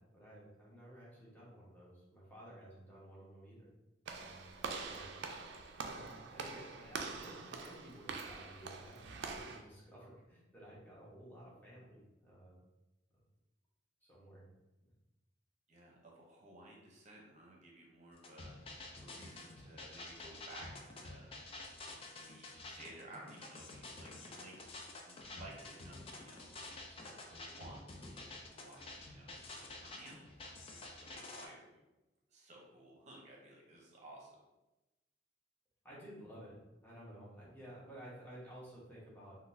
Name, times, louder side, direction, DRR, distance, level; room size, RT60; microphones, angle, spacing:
voice 1, 0.0-3.7 4.2-4.5 4.8-5.1 5.8-12.6 14.0-14.5 35.8-39.4, equal, 10° left, -7 dB, 1.0 m, -54 dB
Walk footsteps / Slam, 4.1-9.6, right 4 dB, 65° right, 0.4 m, -45 dB
voice 2, 15.7-18.6 19.0-21.4 22.1-24.6 25.1-26.6 26.9-31.8 32.3-34.4, right 1 dB, 40° right, -2 dB, 0.8 m, -56 dB
sound 1, 18.2-31.5, left 2 dB, 30° left, 0.4 m, -50 dB
3.8 x 2.3 x 2.6 m, 1.0 s
head